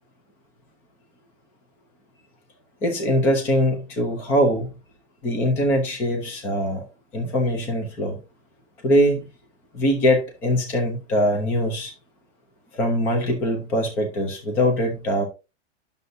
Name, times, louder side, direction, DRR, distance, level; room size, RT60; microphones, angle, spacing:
voice 1, 2.8-4.7 5.2-6.9 7.1-8.2 8.8-9.2 9.7-11.9 12.8-15.3, equal, 5° left, 0.4 m, -22 dB
9.3 x 6.6 x 2.5 m
supercardioid pair, 180°, 33 cm